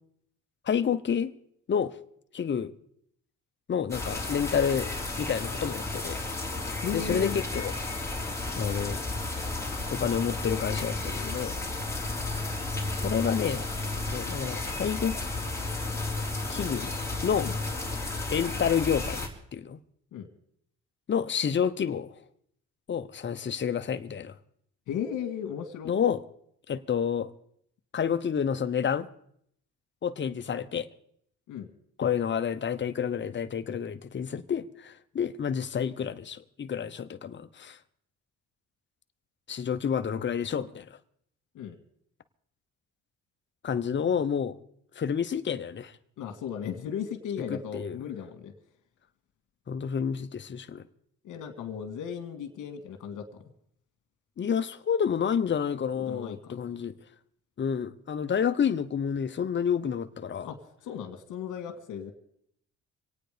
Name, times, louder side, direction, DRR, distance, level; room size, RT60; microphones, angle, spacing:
voice 1, 0.7-1.3 1.7-1.9 2.3-2.7 3.7-4.9 5.2-6.4 6.9-7.7 8.6-9.0 9.9-11.5 13.0-13.6 14.1-15.2 16.5-16.9 17.2-17.5 18.3-19.8 21.1-22.1 22.9-24.4 25.8-26.2 26.7-27.3 27.9-29.1 30.0-30.9 32.0-37.8 39.5-40.9 43.6-44.6 45.0-45.9 47.5-48.0 49.7-50.9 54.4-56.9 57.6-60.5, left 7 dB, 40° left, 0.9 m, -29 dB
sound 1, 3.9-19.3, left 2 dB, 10° left, 3.4 m, -33 dB
voice 2, 6.8-7.4 17.4-17.5 20.1-20.3 24.9-25.9 31.5-31.7 41.5-41.8 46.2-48.5 51.2-53.5 55.9-56.6 60.4-60.6 60.8-62.1, left 8 dB, 80° left, 2.0 m, -36 dB
26.0 x 9.1 x 5.1 m
cardioid pair, 90°, 30 cm